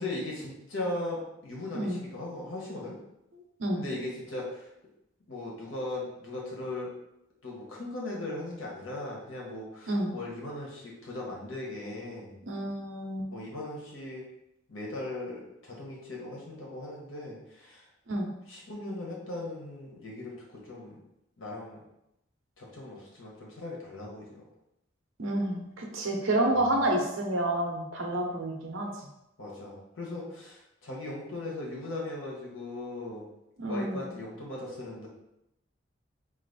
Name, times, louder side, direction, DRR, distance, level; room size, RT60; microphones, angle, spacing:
voice 1, 0.0-3.0 3.8-4.6 5.3-6.9 7.4-12.4 13.3-14.3 14.7-17.8 18.5-20.3 20.6-21.0 21.4-21.8 22.6-24.4 26.4-26.7 29.4-33.2 33.7-35.1, left 2 dB, 85° left, -3 dB, 1.4 m, -38 dB
voice 2, 12.5-13.3 18.1-18.3 25.2-28.9 33.6-34.1, right 1 dB, 85° right, 0 dB, 1.0 m, -29 dB
4.2 x 2.9 x 4.1 m, 0.85 s
head